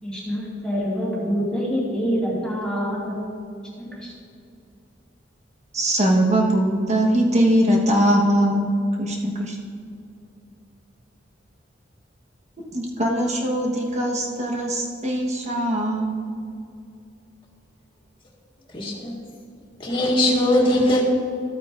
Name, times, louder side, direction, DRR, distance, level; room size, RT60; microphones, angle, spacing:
voice 1, 0.0-3.2 3.8-4.1, equal, 5° left, -8 dB, 2.6 m, -26 dB
voice 2, 5.7-8.7 9.0-9.6 12.7-16.2, right 1 dB, 40° right, -1 dB, 1.5 m, -21 dB
voice 3, 18.7-19.1 19.8-21.0, left 1 dB, 30° left, -2 dB, 2.0 m, -20 dB
14.5 x 8.8 x 2.7 m, 2.5 s
head